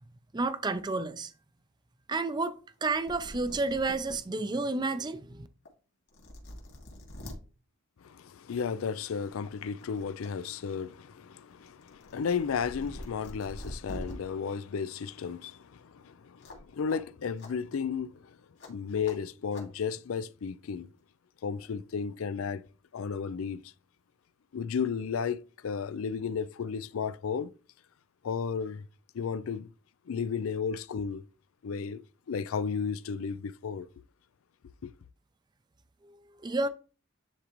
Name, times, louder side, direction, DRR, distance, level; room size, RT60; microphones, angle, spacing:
voice 1, 0.3-1.3 2.1-5.5 36.4-36.7, right 3 dB, 20° right, 0.4 m, -30 dB
sound 1, 2.8-2.9 3.0-4.2 4.7-4.8 5.6-5.7 6.1-7.4 8.6-8.8 9.2-10.3 10.6-14.1 16.4-16.6 16.9-17.0 17.4-17.5 18.6-18.7 19.0-19.2 19.5-19.7, left 1 dB, 65° left, 2.3 m, -44 dB
voice 2, 8.0-18.4 18.7-20.9 21.4-22.6 22.9-23.6 24.5-27.5 28.2-28.9 29.1-29.7 30.1-31.2 31.6-32.0 32.3-33.9 34.8-34.9, left 6 dB, 85° left, 0.4 m, -33 dB
10.0 x 3.8 x 3.0 m
head